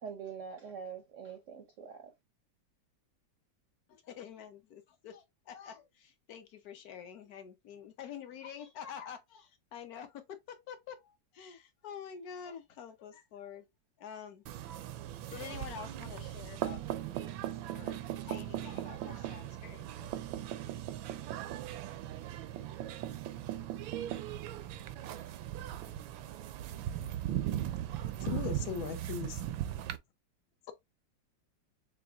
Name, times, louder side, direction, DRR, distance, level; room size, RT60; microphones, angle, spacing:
voice 1, 0.0-2.1, right 6 dB, 70° right, 0.7 m, -44 dB
voice 2, 3.9-13.7 14.0-14.4 15.3-16.9 17.1-20.2, left 8 dB, 65° left, 1.0 m, -47 dB
sound 1, 14.5-30.0, right 12 dB, 90° right, 1.4 m, -38 dB
voice 3, 28.2-29.4 30.7-30.8, left 9 dB, 90° left, 1.5 m, -38 dB
6.8 x 2.4 x 2.3 m
omnidirectional pair, 2.1 m